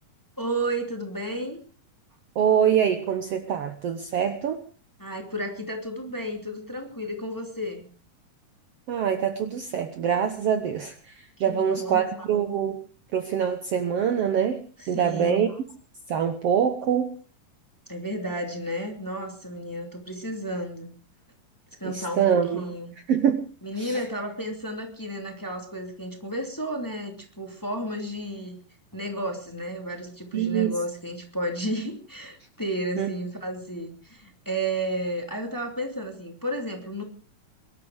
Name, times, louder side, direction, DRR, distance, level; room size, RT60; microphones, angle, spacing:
voice 1, 0.4-1.6 5.0-7.9 11.4-12.3 14.8-15.6 17.9-20.9 21.8-22.9 23.6-28.6 28.9-37.0, right 1 dB, 5° left, 4 dB, 2.4 m, -32 dB
voice 2, 2.4-4.6 8.9-11.1 11.4-12.7 13.1-14.6 14.9-15.5 16.1-17.1 21.8-22.6 23.1-23.4 23.8-24.0 30.3-30.8 33.0-33.1, right 8 dB, 60° right, 8 dB, 1.8 m, -24 dB
23.0 x 12.5 x 4.9 m, 0.39 s
omnidirectional pair, 3.7 m